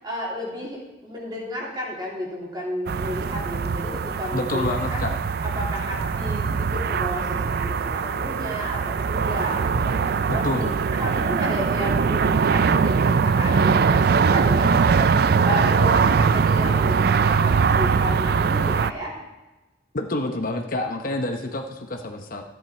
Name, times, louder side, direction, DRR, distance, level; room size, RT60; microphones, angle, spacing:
voice 1, 0.0-5.0 5.4-19.1, equal, 25° right, -3 dB, 3.0 m, -32 dB
sound 1, 2.9-18.9, right 5 dB, 55° right, 0.4 m, -21 dB
voice 2, 4.3-5.1 10.3-10.8 19.9-22.4, left 2 dB, 50° left, 4 dB, 0.9 m, -28 dB
13.5 x 9.6 x 4.3 m, 1.1 s
head